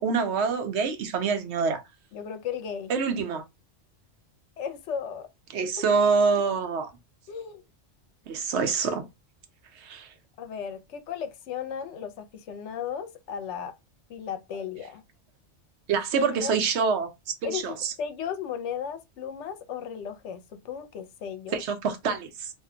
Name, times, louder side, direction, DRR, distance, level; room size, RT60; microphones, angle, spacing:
voice 1, 0.0-1.8 2.9-3.4 5.5-6.9 8.3-9.1 9.8-10.1 15.9-17.1 17.4-17.9 21.5-22.5, right 5 dB, 70° right, 0.9 m, -26 dB
voice 2, 2.1-2.9 4.6-5.3 5.8-5.9 7.3-7.6 10.4-13.7 14.1-15.0 16.1-16.6 17.4-21.6, left 7 dB, 80° left, 0.9 m, -35 dB
2.5 x 2.1 x 3.6 m
omnidirectional pair, 1.2 m